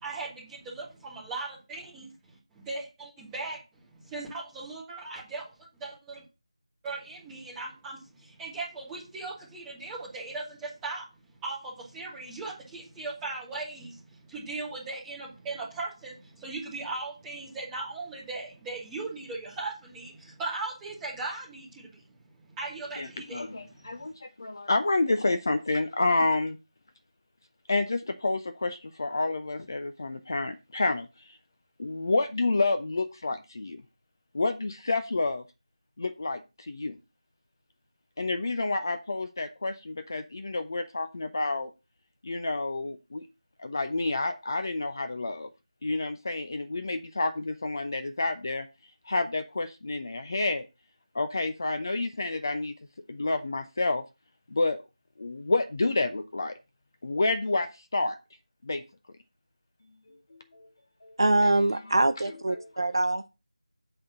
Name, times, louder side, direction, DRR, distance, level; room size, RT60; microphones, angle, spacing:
voice 1, 0.0-2.1 2.5-3.6 3.9-5.4 5.7-6.2 6.8-11.0 11.4-22.0 22.5-24.0, right 3 dB, 5° right, -6 dB, 1.5 m, -38 dB
voice 2, 23.0-26.6 27.7-31.1 31.8-33.8 34.3-35.4 36.0-37.0 38.2-41.7 42.2-43.2 43.6-45.5 45.8-48.7 49.1-50.7 51.1-52.7 53.1-54.0 54.5-54.8 55.2-56.6 57.0-58.2 58.6-58.8 60.1-60.7 61.0-61.2 62.5-62.7, left 2 dB, 35° left, 10 dB, 0.7 m, -29 dB
voice 3, 61.2-63.3, right 2 dB, 45° right, 10 dB, 0.4 m, -24 dB
8.3 x 3.7 x 5.9 m, 0.28 s
figure-of-eight pair, 165°, 3 cm